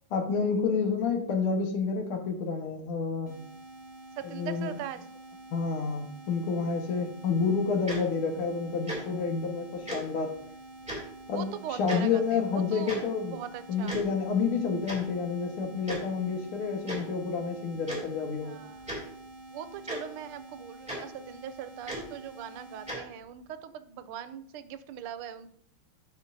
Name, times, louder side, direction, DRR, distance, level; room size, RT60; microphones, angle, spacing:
voice 1, 0.1-3.4 4.2-4.7 5.5-10.3 11.3-13.4 13.7-18.6, left 5 dB, 85° left, 3 dB, 2.1 m, -29 dB
sound 1, 3.3-23.0, right 2 dB, 15° left, 2.2 m, -48 dB
voice 2, 4.2-5.1 11.3-12.9 13.3-14.0 18.4-18.9 19.5-25.5, right 9 dB, 90° right, 12 dB, 1.5 m, -41 dB
Tick-tock, 7.9-8.0 8.8-9.0 9.9-10.0 10.8-11.0 11.9-12.0 12.9-13.0 13.8-14.0 14.9-15.0 15.9-16.0 16.8-17.0 17.9-18.0 18.8-19.0 19.9-20.0 20.9-21.0 21.8-22.0 22.9-23.0, equal, 5° right, 2.4 m, -35 dB
12.5 x 5.4 x 2.6 m, 0.66 s
omnidirectional pair, 2.3 m